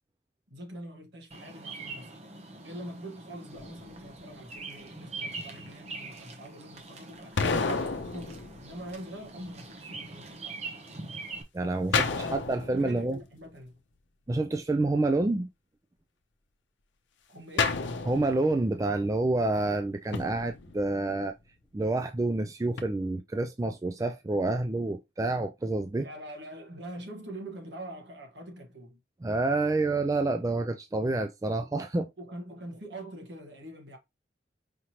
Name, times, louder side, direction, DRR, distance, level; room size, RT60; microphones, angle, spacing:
voice 1, 0.5-7.5 7.9-10.6 11.9-13.8 17.3-17.9 26.0-29.0 32.2-34.0, right 1 dB, 75° right, 1.4 m, -44 dB
Bird vocalization bird call bird song, 1.3-11.4, right 3 dB, 35° right, 0.7 m, -43 dB
sound 1, 3.5-4.4 7.4-9.3 11.9-13.5 17.6-18.9 20.1-21.3 22.8-22.9, left 4 dB, 90° left, 0.6 m, -31 dB
voice 2, 11.5-13.2 14.3-15.5 18.1-21.3 21.7-26.1 29.2-32.1, right 2 dB, 20° right, 0.3 m, -28 dB
5.0 x 3.0 x 2.9 m
head